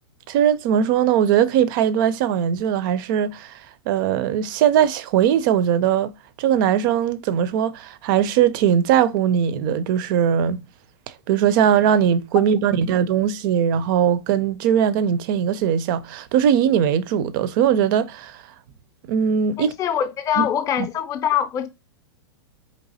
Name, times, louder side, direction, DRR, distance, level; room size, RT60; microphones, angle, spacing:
voice 1, 0.3-3.5 3.9-6.1 6.4-10.6 11.3-18.4 19.1-19.7 20.4-20.5 20.8-20.9, right 9 dB, 45° right, 0.4 m, -20 dB
voice 2, 19.6-21.7, left 10 dB, 20° left, 0.5 m, -23 dB
4.0 x 3.3 x 2.6 m
hypercardioid pair, 140°, 15 cm